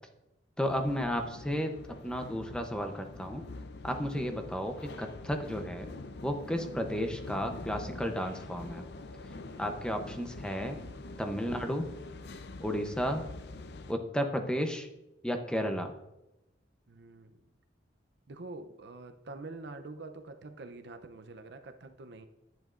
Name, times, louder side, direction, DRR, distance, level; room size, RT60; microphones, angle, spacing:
sound 1, 0.6-13.9, left 2 dB, 60° left, 0.5 m, -45 dB
voice 1, 0.6-3.4 3.8-5.9 6.2-8.8 9.6-10.8 11.2-11.9 12.6-13.3 13.9-14.9 15.2-15.9, equal, 5° left, 5 dB, 0.7 m, -33 dB
voice 2, 9.5-9.8 16.9-17.4 18.3-22.3, right 3 dB, 65° right, 8 dB, 0.6 m, -46 dB
10.5 x 8.8 x 2.5 m, 0.93 s
head